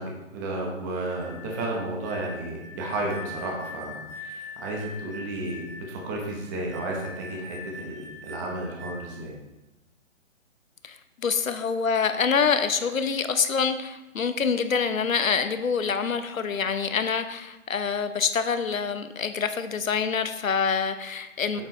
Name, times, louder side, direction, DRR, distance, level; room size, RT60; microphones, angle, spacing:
voice 1, 0.0-9.3, right 2 dB, 15° right, -1 dB, 1.0 m, -33 dB
sound 1, 1.0-9.3, left 3 dB, 45° right, 1.6 m, -42 dB
voice 2, 10.8-21.6, left 6 dB, 90° left, 9 dB, 1.0 m, -26 dB
8.7 x 7.4 x 3.2 m, 1.0 s
hypercardioid pair, 155°, 39 cm